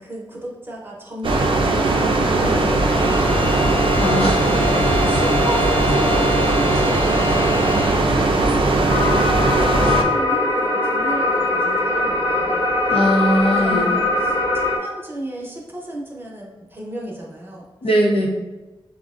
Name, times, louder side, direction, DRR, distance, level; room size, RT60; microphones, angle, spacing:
voice 1, 0.0-3.6 4.1-9.3 9.6-12.7 13.5-17.7, right 1 dB, 25° right, -3 dB, 0.8 m, -33 dB
sound 1, 1.2-10.0, right 2 dB, 65° right, 0.5 m, -18 dB
Bowed string instrument, 2.8-8.1, left 5 dB, 15° left, 0.4 m, -28 dB
voice 2, 3.9-4.4 12.9-13.9 17.8-18.3, equal, 80° left, -3 dB, 0.8 m, -19 dB
sound 2, 8.9-14.8, left 2 dB, 40° left, 1.0 m, -21 dB
6.3 x 2.1 x 2.4 m, 1.1 s
wide cardioid pair, 105°, 10 cm